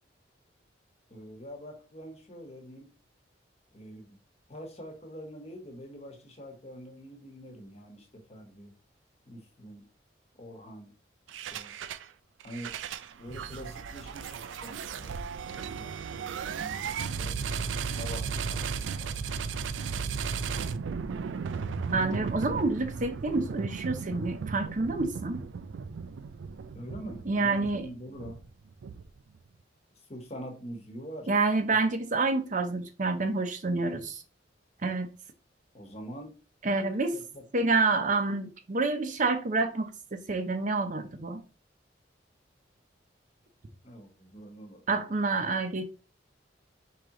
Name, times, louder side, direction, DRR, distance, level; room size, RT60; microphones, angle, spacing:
voice 1, 1.1-2.9 3.7-4.2 4.5-8.7 9.3-9.8 10.4-10.9 11.3-11.7 12.4-12.7 13.2-17.3 17.9-19.3 26.7-28.4 30.1-31.3 35.7-36.3 37.1-37.4 43.8-45.1, equal, 35° left, 1.1 m, -45 dB
sound 1, 11.3-12.1 12.4-29.4, right 5 dB, 85° right, 0.4 m, -35 dB
voice 2, 21.9-25.4 27.3-27.9 31.3-34.2 34.8-35.1 36.6-37.2 37.5-39.9 40.3-41.4 44.9-45.8, right 3 dB, 45° right, 0.6 m, -28 dB
4.8 x 2.9 x 3.6 m
head